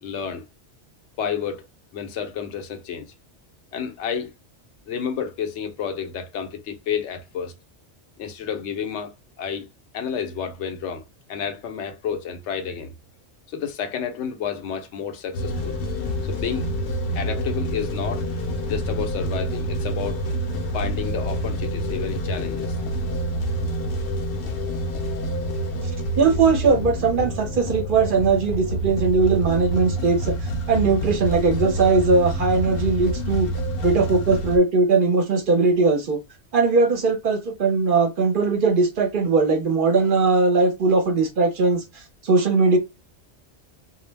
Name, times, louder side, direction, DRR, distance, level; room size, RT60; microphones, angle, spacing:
voice 1, 0.0-0.4 1.2-1.6 1.9-3.1 3.7-4.3 4.9-7.5 8.2-9.7 9.9-11.0 11.3-12.9 13.5-15.8 16.2-16.7 17.1-18.3 18.7-20.2 20.7-22.8 33.8-33.9, left 7 dB, 90° left, 0.9 m, -30 dB
sound 1, 15.3-34.6, right 1 dB, 65° left, 0.7 m, -27 dB
voice 2, 26.2-30.4 30.7-33.5 33.8-36.2 36.5-41.8 42.2-42.8, right 4 dB, 55° right, 0.7 m, -19 dB
2.2 x 2.0 x 3.2 m
omnidirectional pair, 1.1 m